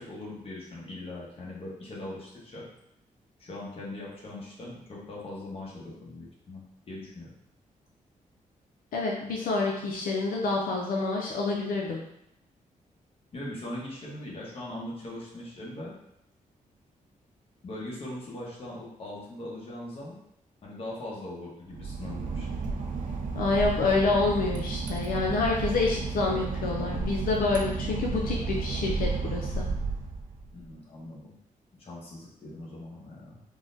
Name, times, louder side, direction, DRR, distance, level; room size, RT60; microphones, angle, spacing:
voice 1, 0.0-2.7 3.4-7.3 13.3-15.9 17.6-20.2 20.6-22.5 30.5-31.4 31.8-33.4, left 1 dB, 40° left, -5 dB, 1.0 m, -40 dB
voice 2, 8.9-12.0 23.4-29.7, left 3 dB, 85° left, -1 dB, 0.4 m, -27 dB
Boat Water vehicle / Engine, 21.7-30.6, right 4 dB, 65° right, 0.4 m, -32 dB
3.7 x 2.1 x 2.6 m, 0.80 s
wide cardioid pair, 130°, 14 cm